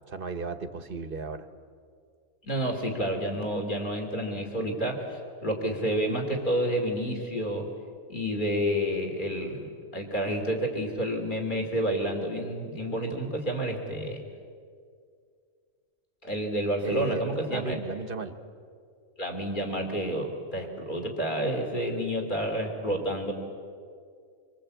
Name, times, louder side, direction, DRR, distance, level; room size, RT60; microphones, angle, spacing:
voice 1, 0.1-1.4 16.8-18.4, right 5 dB, 40° right, 9 dB, 1.4 m, -35 dB
voice 2, 2.4-7.7 8.1-14.2 16.2-17.8 19.2-23.3, equal, 35° left, 3 dB, 3.2 m, -29 dB
25.5 x 25.5 x 8.5 m, 2.2 s
omnidirectional pair, 1.5 m